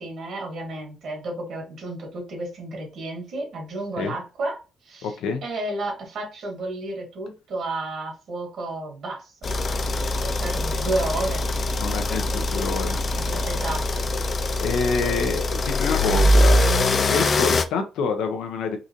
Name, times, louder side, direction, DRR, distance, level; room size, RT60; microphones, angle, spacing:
voice 1, 0.0-4.6 4.8-5.2 5.4-9.5 10.2-11.5 13.2-14.1 15.0-15.1, right 2 dB, 70° right, 1 dB, 1.8 m, -32 dB
voice 2, 5.0-5.4 11.8-13.0 14.6-18.8, left 4 dB, 85° left, 6 dB, 0.7 m, -27 dB
sound 1, 9.4-17.6, left 1 dB, 40° left, 0.4 m, -22 dB
3.8 x 2.6 x 2.9 m, 0.31 s
cardioid pair, 90°, 0 cm